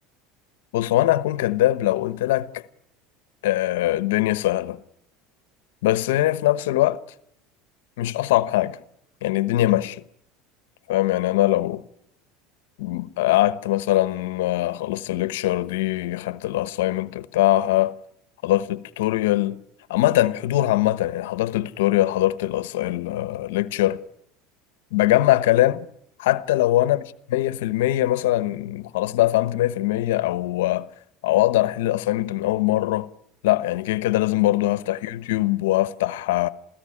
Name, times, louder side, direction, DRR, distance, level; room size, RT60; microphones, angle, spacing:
voice 1, 0.7-2.6 3.4-4.8 5.8-7.0 8.0-8.8 9.2-10.0 10.9-11.8 12.8-17.9 18.4-19.6 19.9-24.0 24.9-25.9 26.2-27.0 27.3-30.9 31.2-33.1 33.4-36.5, left 15 dB, 90° left, 1.1 m, -22 dB
28.0 x 16.0 x 9.9 m
supercardioid pair, 130°, 0 cm